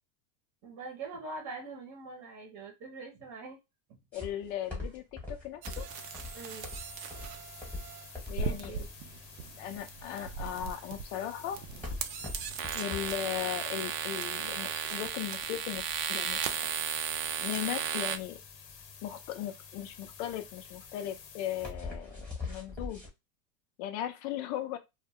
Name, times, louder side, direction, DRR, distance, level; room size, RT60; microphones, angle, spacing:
voice 1, 0.6-3.6 3.9-4.0 6.3-6.7 8.4-8.8, right 3 dB, 30° right, 0.9 m, -43 dB
voice 2, 4.1-5.9 8.3-8.8 9.6-11.6 12.7-16.4 17.4-18.4 19.0-23.0 23.8-24.8, left 11 dB, 50° left, 0.5 m, -37 dB
sound 1, 4.1-23.1, left 3 dB, 5° left, 1.1 m, -43 dB
sound 2, 5.6-18.2, right 7 dB, 60° right, 0.6 m, -36 dB
sound 3, 5.9-21.7, left 6 dB, 85° left, 0.9 m, -51 dB
2.3 x 2.1 x 3.4 m
supercardioid pair, 130°, 50 cm